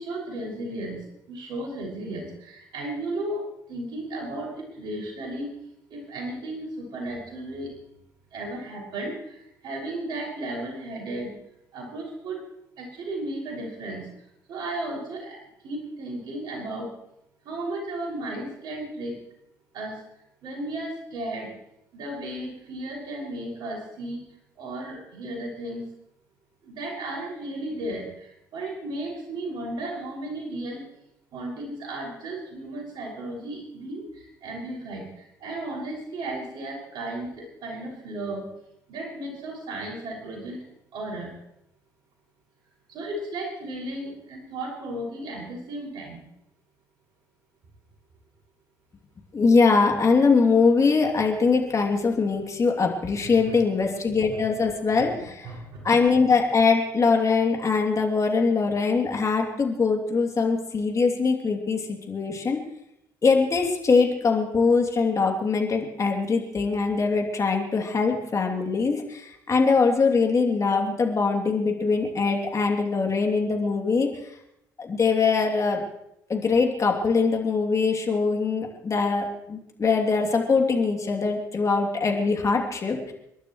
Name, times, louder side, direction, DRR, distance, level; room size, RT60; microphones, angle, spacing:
voice 1, 0.0-3.4 3.7-5.5 5.9-7.7 8.3-11.4 11.7-12.4 12.8-14.1 14.5-16.9 17.4-19.2 19.7-20.0 20.4-21.5 21.9-24.2 24.6-25.9 26.6-30.8 31.3-38.4 38.9-40.6 40.9-41.3 42.9-46.2 53.5-53.6 55.0-55.1 55.4-55.9, right 1 dB, 60° right, -2 dB, 6.3 m, -34 dB
voice 2, 49.3-62.6 63.2-74.1 74.8-75.8 76.3-83.1, left 4 dB, 40° left, 2 dB, 3.0 m, -22 dB
29.5 x 12.0 x 3.2 m, 0.80 s
hypercardioid pair, 50°, 9 cm